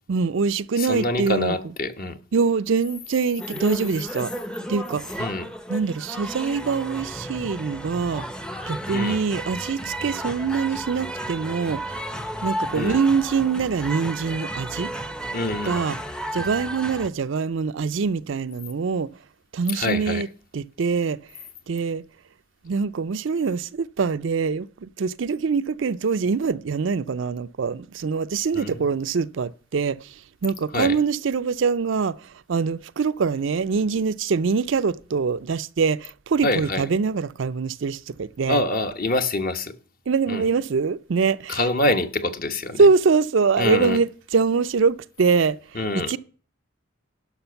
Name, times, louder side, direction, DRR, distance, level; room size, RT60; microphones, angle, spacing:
voice 1, 0.1-1.6 2.3-4.3 4.7-5.2 5.7-8.2 8.7-11.8 12.4-14.9 15.6-16.0 16.3-19.1 19.5-20.3 20.5-21.2 21.7-22.0 22.6-38.6 40.1-41.6 42.8-46.2, right 5 dB, 65° right, 0.4 m, -24 dB
voice 2, 0.8-2.2 5.2-5.5 8.9-9.2 12.7-13.0 15.3-15.8 19.7-20.2 28.5-28.9 30.7-31.0 36.4-36.8 38.5-39.7 40.3-40.4 41.5-42.9 43.6-44.0 45.7-46.1, left 2 dB, 45° left, 1.1 m, -25 dB
sound 1, 3.4-17.1, right 1 dB, 5° left, 0.6 m, -33 dB
11.5 x 6.0 x 6.9 m
head